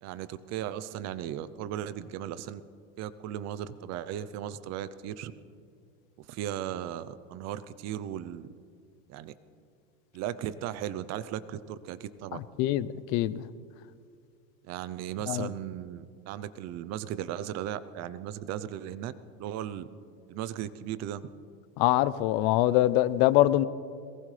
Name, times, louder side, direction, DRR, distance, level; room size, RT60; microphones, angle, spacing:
voice 1, 0.0-2.6 3.0-5.3 6.2-8.5 9.1-9.3 10.1-12.4 14.6-19.1 19.4-19.9 20.3-21.2, right 11 dB, 40° right, 15 dB, 0.7 m, -36 dB
voice 2, 12.3-13.4 15.3-15.5 21.8-23.7, left 15 dB, 55° left, 16 dB, 0.7 m, -24 dB
22.0 x 19.0 x 3.3 m, 2.2 s
supercardioid pair, 140°, 40 cm